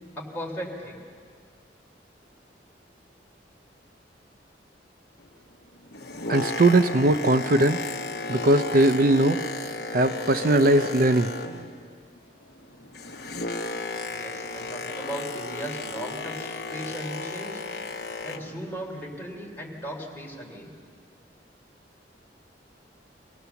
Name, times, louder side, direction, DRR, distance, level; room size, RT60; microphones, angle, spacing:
voice 1, 0.1-1.0 14.1-17.6 18.2-20.7, equal, 10° left, -3 dB, 3.3 m, -37 dB
Boat Water vehicle, 5.8-11.9 12.2-18.6 19.3-19.4, left 3 dB, 60° left, 1.0 m, -34 dB
voice 2, 6.3-7.8 8.3-9.4 9.9-11.3, right 2 dB, 55° right, 9 dB, 0.5 m, -20 dB
24.0 x 17.0 x 7.0 m, 2.1 s
head